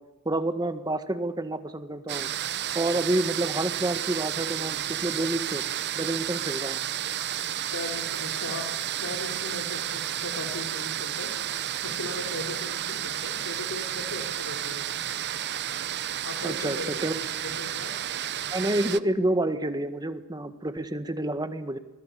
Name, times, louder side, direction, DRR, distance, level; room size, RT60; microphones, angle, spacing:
voice 1, 0.3-2.3 2.8-5.6 5.9-6.8 16.4-17.1 18.5-21.8, right 1 dB, 20° right, 9 dB, 1.7 m, -28 dB
sound 1, 2.1-19.0, right 11 dB, 55° right, 0.8 m, -32 dB
voice 2, 7.7-8.7 9.0-11.3 11.8-15.0 16.2-17.1 17.4-17.9, left 2 dB, 65° left, 1 dB, 3.9 m, -38 dB
27.5 x 22.0 x 7.0 m, 1.0 s
head